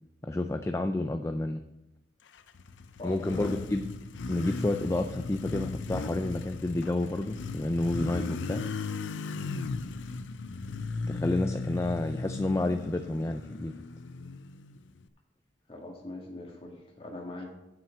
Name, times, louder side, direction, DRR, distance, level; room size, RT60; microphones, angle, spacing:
voice 1, 0.2-1.6 3.0-3.8 4.3-8.6 11.1-13.7, left 2 dB, 15° left, 7 dB, 0.3 m, -30 dB
Motorcycle, 2.4-15.0, left 3 dB, 85° left, 0.5 m, -37 dB
voice 2, 3.0-3.6 15.7-17.5, left 1 dB, 30° left, 0 dB, 1.9 m, -41 dB
7.7 x 5.9 x 7.2 m, 0.95 s
head